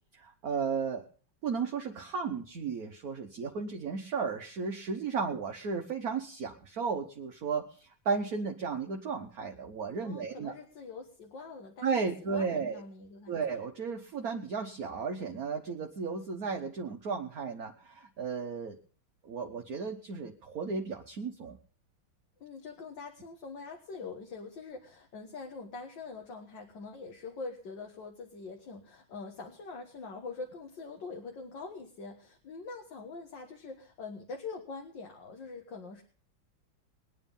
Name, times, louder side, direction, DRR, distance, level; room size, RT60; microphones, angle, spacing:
voice 1, 0.1-1.0 1.4-10.5 11.8-12.8 13.3-18.8 19.2-21.6, right 5 dB, 50° right, 3 dB, 1.4 m, -34 dB
voice 2, 10.0-13.6 22.4-36.0, left 4 dB, 65° left, 2 dB, 2.2 m, -44 dB
21.0 x 9.6 x 5.4 m, 0.43 s
omnidirectional pair, 2.2 m